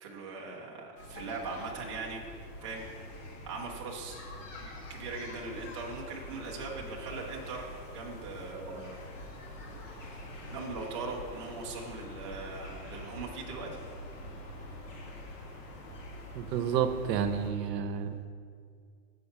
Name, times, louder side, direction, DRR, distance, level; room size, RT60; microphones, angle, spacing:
voice 1, 0.0-2.8 3.4-4.2 4.6-7.7 7.9-9.0 10.5-13.7, right 3 dB, 20° right, -3 dB, 0.4 m, -40 dB
sound 1, 1.0-17.5, left 1 dB, 50° left, 1.7 m, -45 dB
voice 2, 16.3-18.2, right 8 dB, 75° right, 9 dB, 0.8 m, -30 dB
7.1 x 5.6 x 5.4 m, 2.1 s
supercardioid pair, 170°, 49 cm